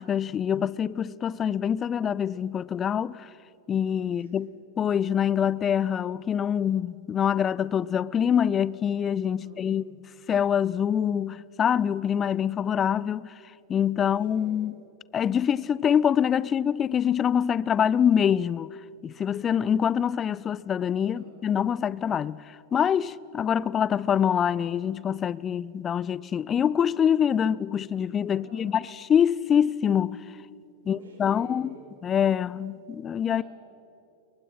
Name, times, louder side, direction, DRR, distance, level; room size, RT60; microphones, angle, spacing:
voice 1, 0.0-3.3 3.7-4.5 4.8-9.8 10.3-13.3 13.7-14.7 15.1-18.7 19.0-22.4 22.7-28.8 29.1-30.2 30.9-31.7 32.0-33.4, left 8 dB, 25° left, 0.5 m, -25 dB
voice 2, 4.1-4.4 9.4-9.8 14.0-14.6 21.0-21.4 28.3-28.8 30.9-31.8 33.3-33.4, right 3 dB, 65° right, 3.7 m, -49 dB
29.5 x 23.0 x 5.7 m
figure-of-eight pair, 90°, 0 cm